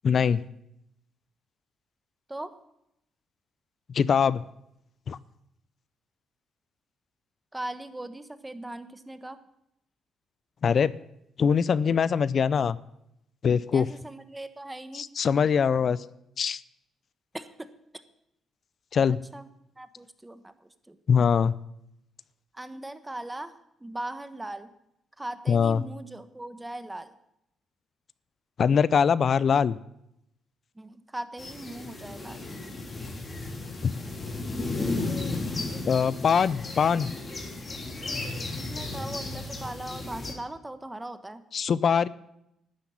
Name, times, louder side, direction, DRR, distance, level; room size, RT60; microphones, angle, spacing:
voice 1, 0.0-0.4 3.9-4.4 5.1-5.2 10.6-10.9 11.4-12.8 13.4-13.9 14.9-16.0 16.4-16.6 18.9-19.2 21.1-21.5 25.5-25.8 28.6-29.8 33.8-33.9 35.9-37.1 41.5-42.1, left 6 dB, 50° left, 19 dB, 0.5 m, -22 dB
voice 2, 7.5-9.4 13.7-15.1 17.3-17.7 19.3-19.5 19.8-21.0 22.5-23.5 23.8-24.7 25.2-27.2 30.7-32.5 38.6-41.4, right 1 dB, 10° right, 11 dB, 1.2 m, -39 dB
sound 1, 31.4-40.3, left 2 dB, 30° left, 3.3 m, -34 dB
12.0 x 9.9 x 8.6 m, 0.80 s
cardioid pair, 90°, 0 cm